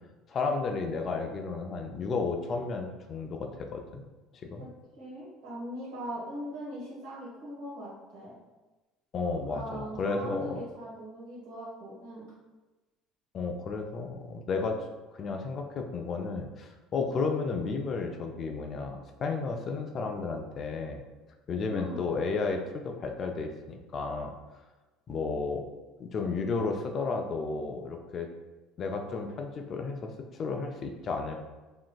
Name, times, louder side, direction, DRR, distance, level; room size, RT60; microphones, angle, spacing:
voice 1, 0.3-4.1 4.5-4.7 9.1-10.6 13.3-14.8 15.1-21.0 21.5-24.3 25.1-25.6 26.0-28.3 28.8-30.1 30.4-31.5, left 4 dB, 45° left, 4 dB, 0.4 m, -33 dB
voice 2, 5.0-8.4 9.5-12.3 21.7-22.0, equal, 80° right, -7 dB, 1.4 m, -40 dB
2.8 x 2.5 x 2.2 m, 1.2 s
hypercardioid pair, 75°, 0 cm